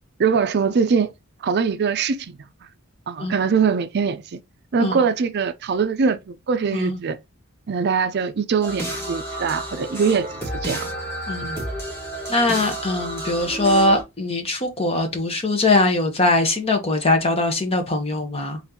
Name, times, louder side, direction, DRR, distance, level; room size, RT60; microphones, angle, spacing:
voice 1, 0.2-1.1 1.4-2.3 3.1-4.4 4.7-6.2 6.5-7.2 7.7-10.9, right 5 dB, 50° right, 0.4 m, -22 dB
voice 2, 6.7-7.0 11.3-11.6 12.3-18.6, left 2 dB, 30° left, 1.1 m, -21 dB
sound 1, 8.6-14.0, right 1 dB, 10° left, 1.9 m, -31 dB
4.1 x 3.9 x 2.8 m
head